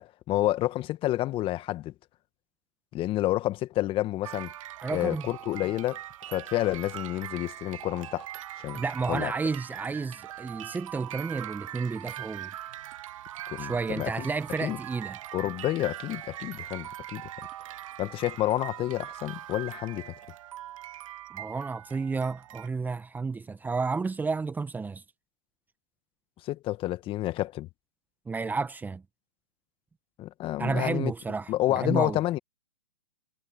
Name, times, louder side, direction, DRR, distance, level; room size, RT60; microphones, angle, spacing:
voice 1, 0.0-1.9 2.9-4.5 4.9-6.0 6.3-8.3 8.6-8.8 9.1-9.3 13.5-14.3 14.6-14.8 15.3-17.3 18.0-20.1 26.4-27.7 30.2-31.1 31.5-32.4, left 15 dB, 25° left, 1.5 m, -29 dB
sound 1, 4.2-22.7, right 13 dB, 55° right, 1.0 m, -41 dB
voice 2, 4.8-5.2 8.7-12.5 13.6-15.2 21.3-25.0 28.3-29.0 30.6-32.2, right 4 dB, 10° right, 1.3 m, -31 dB
hypercardioid pair, 125°, 20 cm